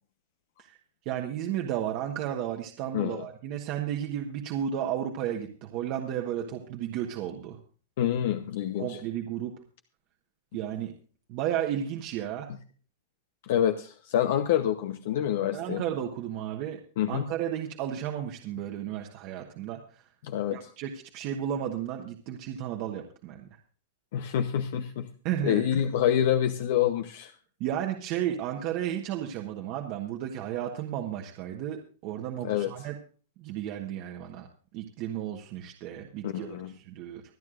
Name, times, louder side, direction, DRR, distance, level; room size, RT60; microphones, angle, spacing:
voice 1, 1.0-7.6 8.8-9.5 10.5-10.9 11.3-12.5 15.5-16.8 17.1-20.0 20.5-23.5 25.2-25.6 27.6-32.9 33.4-34.5 34.7-37.2, right 10 dB, 40° right, 2 dB, 1.3 m, -33 dB
voice 2, 2.9-3.2 8.0-9.0 13.4-15.8 17.0-17.2 20.2-20.7 24.1-25.1 25.4-27.3 32.4-32.7 36.2-36.7, left 10 dB, 60° left, 8 dB, 0.9 m, -27 dB
25.0 x 9.5 x 2.5 m, 0.40 s
supercardioid pair, 160°, 0 cm